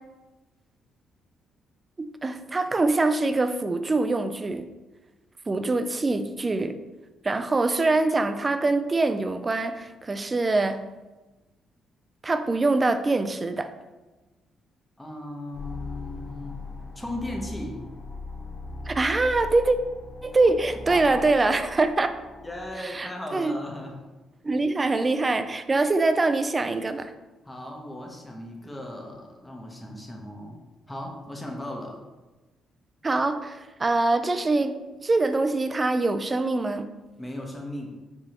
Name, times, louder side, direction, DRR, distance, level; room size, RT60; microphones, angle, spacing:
voice 1, 2.0-4.7 5.5-6.8 7.2-10.8 12.2-13.7 18.9-19.8 20.2-22.1 22.8-23.6 24.4-27.1 33.0-34.8 35.0-36.9, right 3 dB, 25° right, 9 dB, 0.3 m, -24 dB
voice 2, 15.0-16.6 16.9-17.8 20.9-21.2 22.4-23.9 27.4-30.6 30.9-32.0 37.2-38.0, left 1 dB, 10° left, 0 dB, 0.9 m, -37 dB
sound 1, 15.5-22.7, left 2 dB, 70° left, 0.9 m, -39 dB
4.8 x 3.6 x 2.9 m, 1.1 s
cardioid pair, 90°, 0 cm